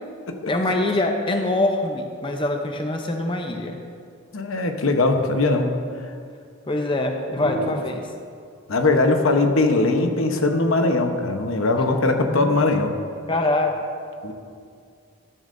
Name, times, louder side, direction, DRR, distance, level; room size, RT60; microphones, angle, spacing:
voice 1, 0.5-3.8 6.7-8.1 12.3-12.6 13.3-13.8, left 2 dB, 25° left, 4 dB, 0.6 m, -24 dB
voice 2, 4.3-5.7 7.4-7.7 8.7-12.9 14.2-14.3, left 2 dB, 80° left, 5 dB, 0.9 m, -20 dB
13.0 x 12.5 x 2.6 m, 2.3 s
head